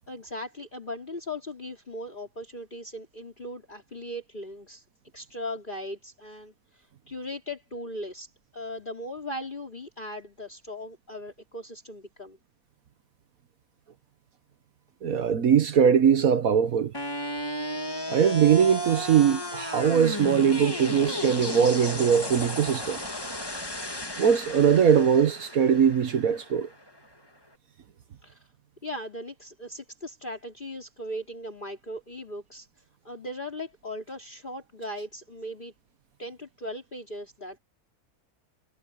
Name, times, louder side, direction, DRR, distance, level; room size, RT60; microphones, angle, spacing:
voice 1, 0.1-4.8 5.1-12.4 28.2-28.5 28.8-32.7 33.0-35.7 36.2-37.6, left 1 dB, 30° left, 3.8 m, -38 dB
voice 2, 15.0-16.9 18.1-23.0 24.2-26.7, right 7 dB, 70° right, 1.5 m, -21 dB
sound 1, 16.9-27.0, left 1 dB, 15° left, 2.1 m, -34 dB
omnidirectional pair, 1.6 m